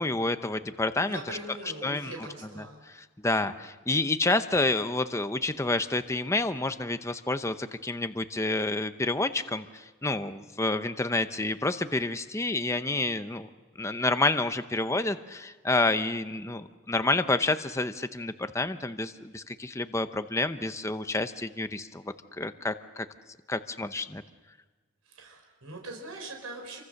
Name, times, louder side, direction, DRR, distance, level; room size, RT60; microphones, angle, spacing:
voice 1, 0.0-1.4 1.8-2.1 2.9-13.5 13.8-22.0 22.4-23.1 23.5-24.2, left 2 dB, 15° left, 9 dB, 0.7 m, -29 dB
voice 2, 1.0-2.9 25.0-26.8, right 2 dB, 90° right, 2 dB, 4.6 m, -42 dB
27.5 x 24.5 x 6.5 m, 1.3 s
head